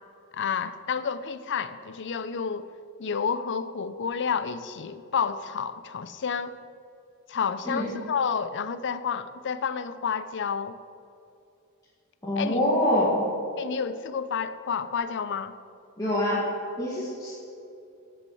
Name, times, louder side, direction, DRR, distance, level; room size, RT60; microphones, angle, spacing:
voice 1, 0.3-2.7 3.0-6.6 7.3-10.8 12.4-12.6 13.6-15.5, left 6 dB, 55° left, 13 dB, 0.5 m, -30 dB
voice 2, 12.2-13.3 16.0-16.4 16.8-17.3, left 1 dB, 15° left, -8 dB, 2.1 m, -25 dB
13.0 x 6.5 x 7.7 m, 2.6 s
head